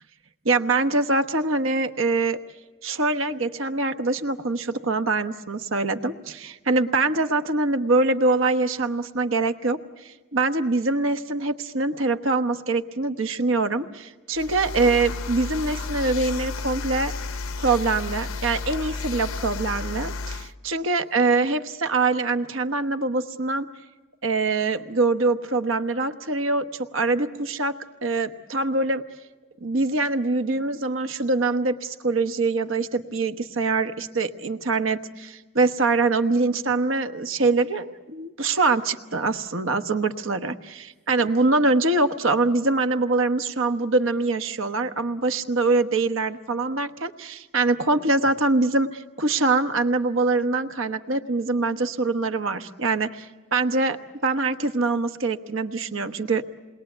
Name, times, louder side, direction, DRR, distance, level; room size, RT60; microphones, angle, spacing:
voice 1, 0.4-2.4 2.8-9.8 10.0-17.1 17.6-23.7 24.2-27.7 28.0-29.0 29.6-56.4, right 3 dB, 70° right, 9 dB, 1.1 m, -24 dB
sound 1, 14.4-20.5, left 3 dB, 75° left, 0.8 m, -32 dB
28.5 x 21.5 x 7.9 m, 1.2 s
head